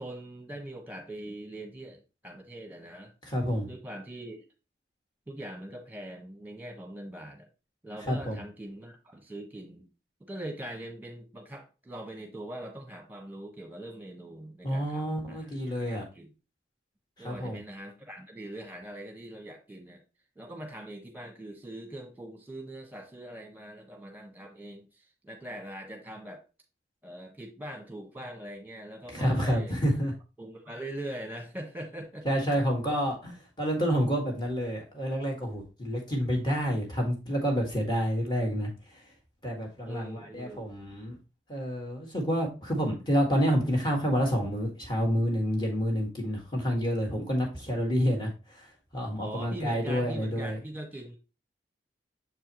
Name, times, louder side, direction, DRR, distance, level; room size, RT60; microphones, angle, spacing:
voice 1, 0.0-3.1 3.7-4.4 5.3-7.5 7.8-9.9 10.2-16.3 17.2-20.0 20.3-26.4 27.0-29.7 30.4-32.3 39.8-40.7 49.2-51.2, right 1 dB, 10° right, 3 dB, 1.3 m, -42 dB
voice 2, 3.2-3.7 8.0-8.4 14.6-16.1 17.2-17.6 29.1-30.1 32.3-39.0 39.4-41.2 41.5-50.6, equal, 25° left, 0 dB, 1.8 m, -29 dB
7.2 x 4.6 x 3.0 m, 0.31 s
head